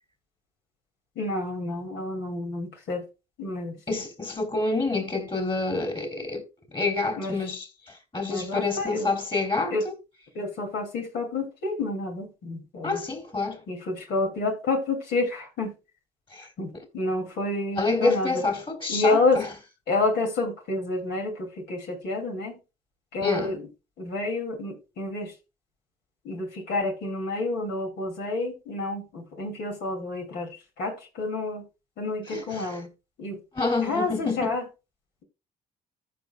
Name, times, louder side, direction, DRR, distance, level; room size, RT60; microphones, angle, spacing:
voice 1, 1.2-3.0 3.4-3.8 7.2-7.3 8.3-9.1 9.7-9.8 10.3-13.0 13.7-15.7 16.6-18.5 18.9-19.4 19.9-22.6 23.1-23.6 24.0-25.3 26.2-31.7 32.0-32.9 33.2-33.4 33.8-34.6, left 2 dB, 70° left, 2.5 m, -29 dB
voice 2, 3.9-6.4 6.7-7.7 8.1-9.9 12.8-13.6 16.3-16.5 17.8-19.4 23.2-23.6 32.3-32.8 33.5-34.6, left 3 dB, 25° left, 3.0 m, -27 dB
14.5 x 5.3 x 2.2 m
supercardioid pair, 60°, 18 cm